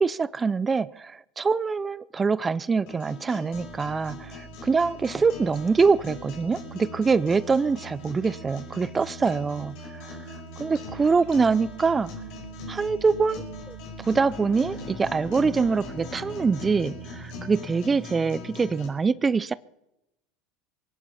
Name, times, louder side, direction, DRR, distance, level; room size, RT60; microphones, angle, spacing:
voice 1, 0.0-10.2 10.6-12.1 12.7-19.5, right 4 dB, 20° right, 20 dB, 0.5 m, -24 dB
sound 1, 2.9-18.9, left 3 dB, 65° left, 5.3 m, -41 dB
sound 2, 3.5-17.5, right 7 dB, 65° right, 2.2 m, -45 dB
sound 3, 13.9-18.0, left 2 dB, 10° left, 3.7 m, -43 dB
23.5 x 10.5 x 5.6 m, 0.88 s
hypercardioid pair, 100°, 0 cm